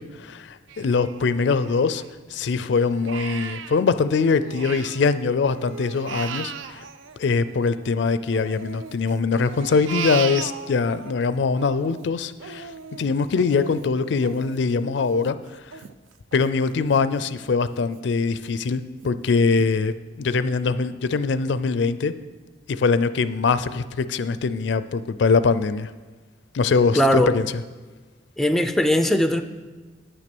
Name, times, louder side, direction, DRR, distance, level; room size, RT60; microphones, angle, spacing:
voice 1, 0.0-2.0 2.3-6.8 7.2-12.7 13.0-15.7 16.3-22.1 22.7-25.9 26.5-27.5, left 4 dB, 65° left, 0.4 m, -22 dB
Crying sobbing, 0.7-2.3 2.8-5.1 5.4-7.9 8.3-11.1 11.5-17.0 17.4-17.5 18.0-18.5 19.0-19.1 19.6-19.7, right 7 dB, 90° right, 0.5 m, -37 dB
voice 2, 27.0-27.4 28.4-29.4, left 1 dB, ahead, 0.4 m, -19 dB
9.6 x 6.1 x 6.0 m
head